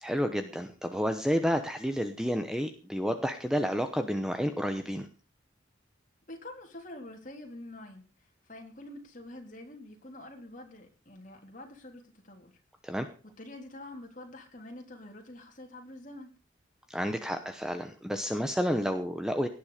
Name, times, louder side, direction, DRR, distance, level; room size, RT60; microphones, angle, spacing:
voice 1, 0.0-5.1 12.8-13.1 16.9-19.5, equal, 5° right, 7 dB, 1.0 m, -30 dB
voice 2, 6.3-12.5 13.2-16.3, left 1 dB, 40° left, 2 dB, 3.7 m, -46 dB
18.0 x 10.5 x 5.1 m, 0.35 s
head